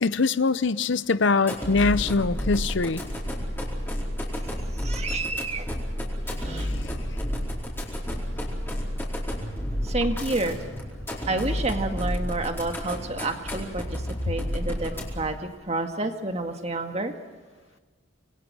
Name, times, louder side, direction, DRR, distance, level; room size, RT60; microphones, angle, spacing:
voice 1, 0.0-3.1 6.6-7.0, left 4 dB, 65° left, 15 dB, 0.7 m, -23 dB
sound 1, 1.4-15.4, equal, 10° left, 4.5 m, -31 dB
voice 2, 4.5-5.8 6.3-6.7 9.8-10.6 11.3-17.1, right 2 dB, 30° right, 5 dB, 1.9 m, -30 dB
27.0 x 21.0 x 6.2 m, 1.4 s
head